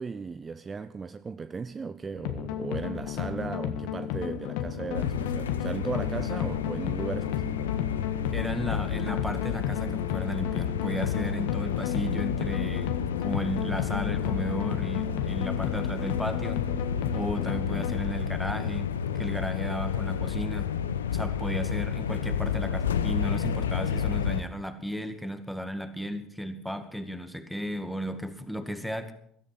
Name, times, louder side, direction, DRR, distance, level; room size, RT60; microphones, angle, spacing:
voice 1, 0.0-7.7, right 5 dB, 25° right, 0.6 m, -36 dB
sound 1, 2.2-18.0, left 10 dB, 65° left, 1.5 m, -33 dB
sound 2, 4.9-24.4, left 7 dB, 85° left, 0.9 m, -31 dB
voice 2, 8.3-16.6 17.1-20.7 21.1-29.1, equal, ahead, 2.1 m, -34 dB
17.0 x 13.0 x 6.0 m
hypercardioid pair, 70°, 0 cm